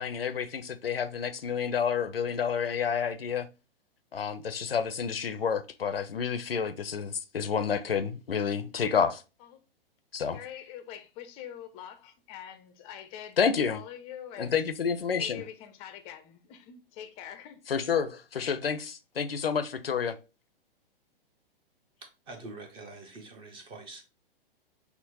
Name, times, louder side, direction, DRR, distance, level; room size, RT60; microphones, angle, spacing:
voice 1, 0.0-3.5 4.1-9.2 10.1-10.4 13.4-13.8 14.4-15.4 17.7-20.2, left 6 dB, 75° left, 0.6 m, -29 dB
voice 2, 10.3-13.4 13.7-14.6 15.1-17.6, left 10 dB, 20° left, 0.5 m, -44 dB
voice 3, 22.3-24.0, right 3 dB, 15° right, 0.7 m, -45 dB
5.8 x 2.0 x 3.9 m
figure-of-eight pair, 110°, 29 cm